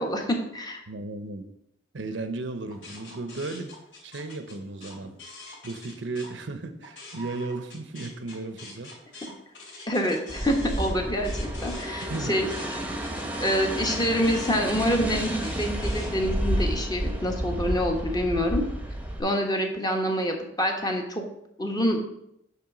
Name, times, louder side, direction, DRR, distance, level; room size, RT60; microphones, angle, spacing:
voice 1, 0.0-0.8 9.9-11.3 11.6-12.5 13.4-18.6 19.2-21.2 21.6-22.0, equal, 20° left, 2 dB, 1.1 m, -26 dB
voice 2, 0.9-1.5 1.9-3.7 4.0-5.1 5.6-9.3 12.0-12.4, right 3 dB, 70° right, 10 dB, 0.7 m, -35 dB
sound 1, 2.7-6.3 6.7-16.1, left 2 dB, 80° left, 2.7 m, -45 dB
sound 2, 10.3-19.2, right 1 dB, 10° right, 0.9 m, -31 dB
8.7 x 3.5 x 5.9 m, 0.77 s
head